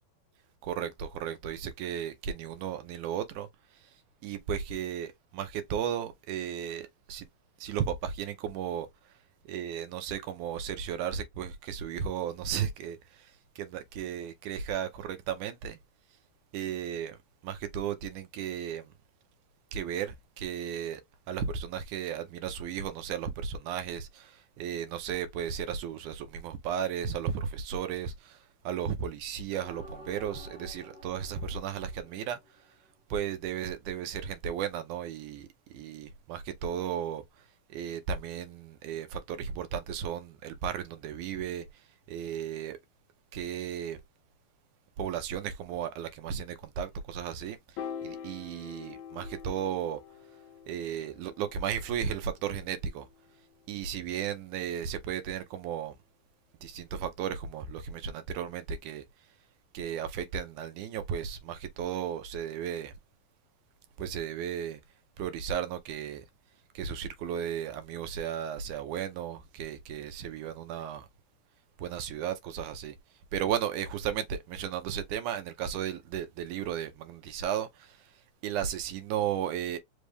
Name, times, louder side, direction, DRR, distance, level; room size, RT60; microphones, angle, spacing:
voice 1, 0.6-3.5 3.7-4.0 4.2-7.3 7.6-9.1 9.5-15.8 16.5-18.9 19.7-21.0 21.3-32.4 33.1-42.8 43.3-44.0 45.0-50.0 50.7-53.1 53.7-56.0 56.6-59.0 59.7-62.9 64.0-64.8 65.2-66.3 66.7-71.1 71.8-73.0 73.3-79.8, right 8 dB, 75° right, 2.0 m, -35 dB
sound 1, 29.6-32.9, equal, 50° left, 0.7 m, -51 dB
Piano, 47.8-54.1, left 8 dB, 70° left, 1.9 m, -46 dB
5.3 x 2.4 x 3.3 m
omnidirectional pair, 3.9 m